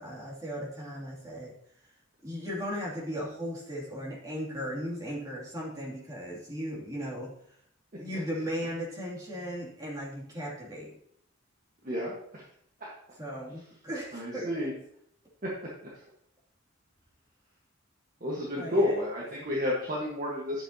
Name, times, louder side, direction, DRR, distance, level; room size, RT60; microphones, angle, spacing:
voice 1, 0.0-1.5 2.2-7.3 8.0-10.9 13.2-14.7 18.5-19.0 19.4-19.5, equal, 20° right, -5 dB, 2.6 m, -37 dB
voice 2, 11.8-12.4 12.8-12.9 14.1-14.7 15.4-15.5 18.2-20.6, left 1 dB, 40° right, -4 dB, 1.4 m, -31 dB
11.0 x 7.0 x 2.8 m, 0.69 s
head